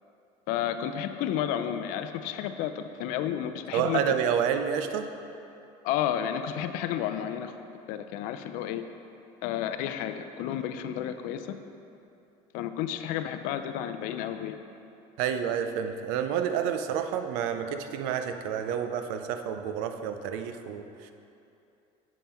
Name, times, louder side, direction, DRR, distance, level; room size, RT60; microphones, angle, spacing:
voice 1, 0.5-4.0 5.8-7.5 7.9-8.8 9.4-11.6 12.5-14.6, left 10 dB, 70° left, 9 dB, 0.4 m, -31 dB
voice 2, 3.7-5.1 15.2-20.8, right 8 dB, 80° right, 7 dB, 0.5 m, -29 dB
7.3 x 5.5 x 4.3 m, 2.7 s
cardioid pair, 140°, 14 cm